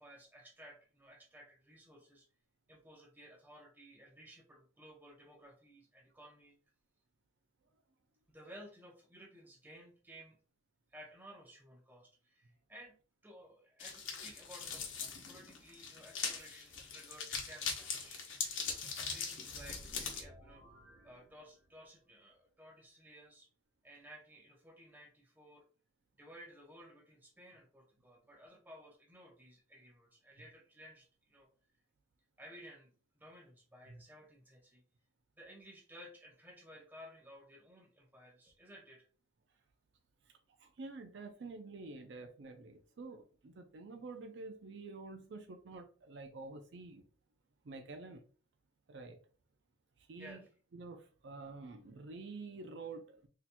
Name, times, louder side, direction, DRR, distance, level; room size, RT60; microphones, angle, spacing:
voice 1, 0.0-2.3 2.7-6.6 8.3-10.4 10.9-12.9 13.2-18.3 19.1-20.6 21.0-23.5 23.8-25.6 26.2-31.5 32.4-34.8 35.4-39.1 50.1-50.5, equal, 10° right, 0.8 m, -56 dB
sound 1, 13.8-20.2, left 5 dB, 90° left, 0.9 m, -41 dB
sound 2, 19.4-22.0, right 1 dB, 90° right, 0.8 m, -56 dB
voice 2, 40.6-47.0 47.6-48.2 48.9-49.2 50.0-50.4 50.7-53.3, right 3 dB, 65° right, 0.5 m, -48 dB
4.2 x 2.8 x 2.2 m
head